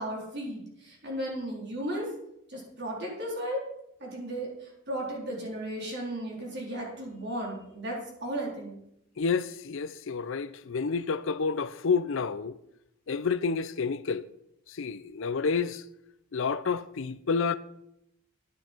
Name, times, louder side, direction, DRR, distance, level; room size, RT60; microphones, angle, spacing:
voice 1, 0.0-2.1 2.5-3.6 4.0-8.7, right 1 dB, 50° right, 3.7 m, -35 dB
voice 2, 9.2-12.6 13.1-14.2 14.7-15.8 16.3-17.6, left 5 dB, 60° left, 0.5 m, -29 dB
11.0 x 9.7 x 4.5 m
head